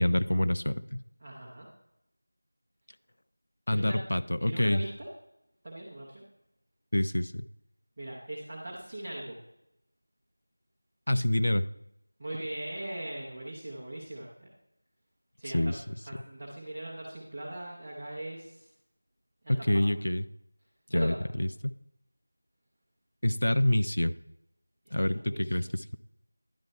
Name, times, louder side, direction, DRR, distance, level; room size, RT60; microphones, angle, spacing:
voice 1, 0.0-1.0 3.7-4.8 6.9-7.5 11.1-11.7 15.5-15.8 19.5-20.2 20.9-21.7 23.2-24.2 24.9-26.0, left 1 dB, 50° left, 14 dB, 0.3 m, -27 dB
voice 2, 1.2-1.7 3.7-4.0 4.4-5.1 5.6-6.2 8.0-9.4 12.2-14.5 15.4-15.8 16.1-18.7 19.4-19.8 20.9-21.2 24.8-25.7, right 1 dB, 10° right, -7 dB, 0.7 m, -40 dB
10.5 x 4.3 x 5.4 m, 0.83 s
figure-of-eight pair, 180°, 0 cm